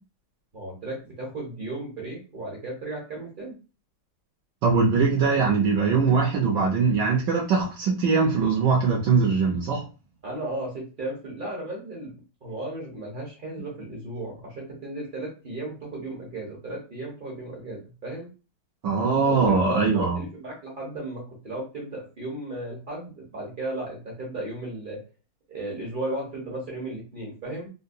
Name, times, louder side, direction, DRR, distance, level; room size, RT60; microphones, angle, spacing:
voice 1, 0.5-3.6 10.2-12.1 12.4-18.3 19.2-25.0 25.5-27.7, right 1 dB, 55° right, -3 dB, 0.5 m, -35 dB
voice 2, 4.6-9.8 18.8-20.2, right 4 dB, 70° right, -1 dB, 1.1 m, -21 dB
3.7 x 2.2 x 2.6 m, 0.33 s
omnidirectional pair, 2.3 m